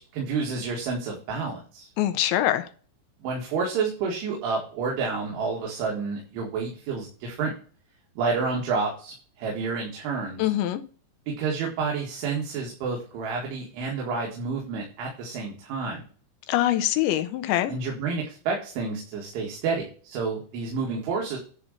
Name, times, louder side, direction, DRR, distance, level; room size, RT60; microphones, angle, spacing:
voice 1, 0.0-1.9 3.2-7.5 8.2-10.5 11.3-16.0 17.7-21.4, right 4 dB, 75° right, 4.3 m, -29 dB
voice 2, 2.0-2.7 10.4-10.8 16.5-17.7, left 13 dB, 80° left, 2.9 m, -24 dB
11.5 x 3.9 x 6.6 m
omnidirectional pair, 5.6 m